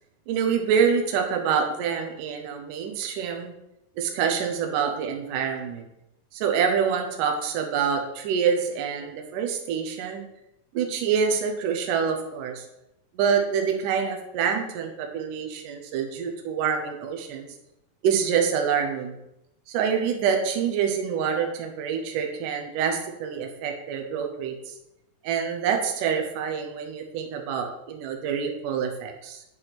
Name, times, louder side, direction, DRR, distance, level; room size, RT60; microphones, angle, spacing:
voice 1, 0.3-3.5 4.0-5.8 6.3-10.2 10.7-12.7 13.2-17.5 18.0-19.1 19.7-24.7 25.2-29.4, right 7 dB, 70° right, 3 dB, 2.1 m, -26 dB
7.1 x 6.1 x 4.1 m, 0.86 s
omnidirectional pair, 4.5 m